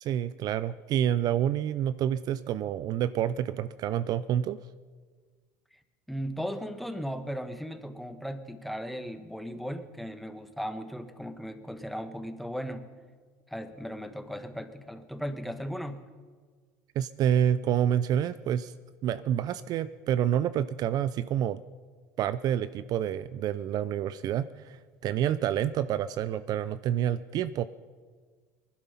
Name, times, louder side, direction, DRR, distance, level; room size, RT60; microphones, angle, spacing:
voice 1, 0.0-4.6 17.0-18.7 19.0-21.6 22.2-27.7, right 10 dB, 50° right, 15 dB, 0.5 m, -28 dB
voice 2, 6.1-12.9 13.5-16.1, equal, ahead, 8 dB, 1.2 m, -37 dB
19.5 x 11.5 x 5.7 m, 1.5 s
supercardioid pair, 95°, 8 cm